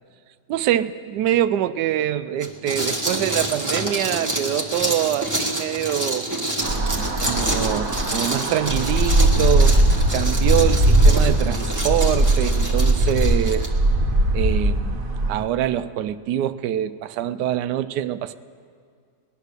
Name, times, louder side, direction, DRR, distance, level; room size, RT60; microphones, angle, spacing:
voice 1, 0.5-6.3 7.2-9.8 10.1-13.7 14.3-15.0 15.3-18.4, right 11 dB, 85° right, 13 dB, 1.2 m, -24 dB
sound 1, 2.4-13.7, right 1 dB, 10° right, 1.2 m, -28 dB
sound 2, 6.6-15.4, right 1 dB, 35° right, 1.0 m, -19 dB
19.5 x 10.5 x 6.6 m, 2.1 s
omnidirectional pair, 1.8 m